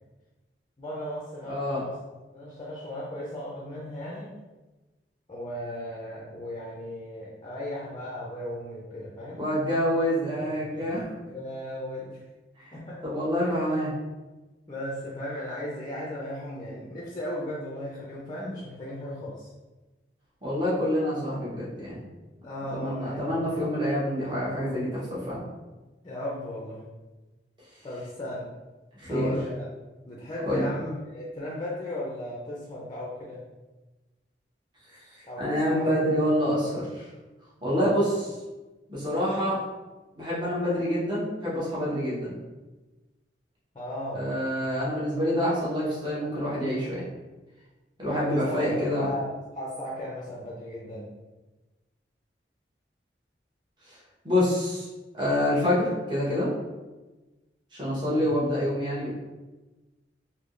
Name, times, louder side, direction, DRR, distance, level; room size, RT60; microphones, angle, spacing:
voice 1, 0.8-2.0 2.3-4.4 5.3-9.5 10.4-12.3 12.7-13.0 13.5-13.6 14.7-19.5 22.4-23.5 23.9-24.3 26.0-26.9 27.8-28.5 29.1-29.7 30.1-33.4 35.2-36.4 37.7-38.0 43.7-44.3 44.6-45.0 48.3-51.1 58.0-58.3, left 1 dB, 25° left, -5 dB, 0.5 m, -36 dB
voice 2, 1.5-1.8 9.4-11.1 12.6-12.7 13.0-13.9 20.4-22.0 22.7-25.4 29.0-29.3 30.4-30.7 35.1-37.0 37.6-38.1 38.9-39.6 40.1-42.4 44.1-47.0 48.0-49.1 53.9-54.0 54.2-54.9 55.1-56.5 57.7-59.1, equal, 25° right, -8 dB, 1.1 m, -27 dB
3.5 x 2.8 x 2.5 m, 1.1 s
head